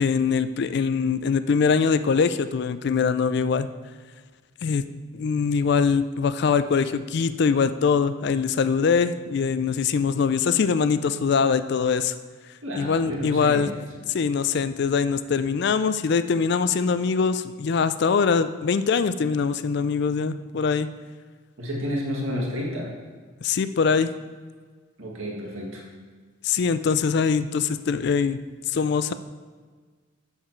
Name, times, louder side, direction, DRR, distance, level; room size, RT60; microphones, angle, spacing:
voice 1, 0.0-3.7 4.6-4.8 5.1-12.1 12.8-13.7 14.1-20.9 23.4-24.1 26.4-28.4 28.7-29.1, left 5 dB, 55° left, 13 dB, 0.3 m, -23 dB
voice 2, 12.6-13.7 21.6-22.9 25.0-25.8, equal, 75° right, -2 dB, 1.7 m, -30 dB
7.3 x 6.7 x 4.5 m, 1.5 s
head